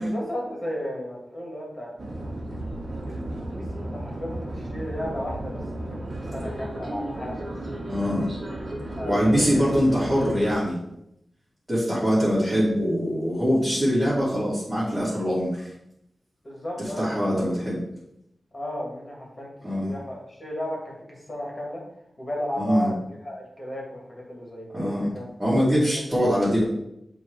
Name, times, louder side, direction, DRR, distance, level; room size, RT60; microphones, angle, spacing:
voice 1, 0.0-1.9 3.1-5.6 6.3-7.5 9.0-10.2 16.4-17.0 17.3-17.5 18.5-19.5 19.8-21.8 22.2-25.3 25.9-26.0, left 1 dB, 30° left, -2 dB, 2.4 m, -34 dB
sound 1, 2.0-10.5, right 1 dB, 40° right, 1.6 m, -34 dB
voice 2, 7.9-8.3 9.1-10.8 11.7-15.7 17.0-17.8 19.6-19.9 22.6-22.9 24.7-25.1 25.4-26.6, equal, 15° right, -11 dB, 2.8 m, -23 dB
7.8 x 3.5 x 4.8 m, 0.80 s
wide cardioid pair, 125°, 0 cm